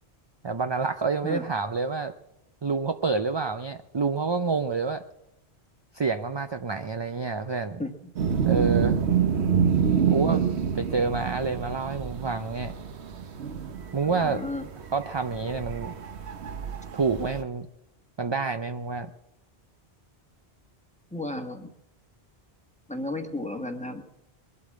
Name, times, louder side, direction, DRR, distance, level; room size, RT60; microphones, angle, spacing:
voice 1, 0.4-2.1 2.6-5.0 5.9-7.8 8.5-9.0 10.1-10.4 10.7-12.7 13.9-14.4 14.9-15.9 16.9-17.7 18.2-19.1, right 4 dB, 35° right, 8 dB, 0.5 m, -28 dB
sound 1, 8.2-17.4, right 7 dB, 85° right, 1.3 m, -27 dB
voice 2, 10.0-10.4 14.0-14.7 21.1-21.7 22.9-24.0, left 2 dB, 5° left, 5 dB, 1.2 m, -34 dB
22.0 x 8.4 x 7.5 m, 0.88 s
omnidirectional pair, 1.1 m